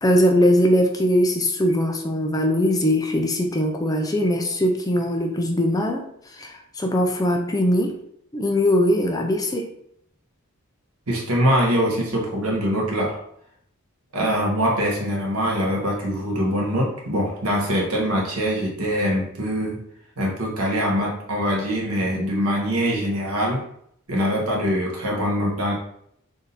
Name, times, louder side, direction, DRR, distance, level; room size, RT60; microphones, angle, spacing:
voice 1, 0.0-8.0 8.3-9.7, equal, 15° left, 2 dB, 0.5 m, -21 dB
voice 2, 11.1-13.2 14.1-19.8 20.2-23.6 24.1-25.7, equal, 85° right, -2 dB, 1.3 m, -23 dB
3.6 x 2.7 x 4.0 m, 0.71 s
head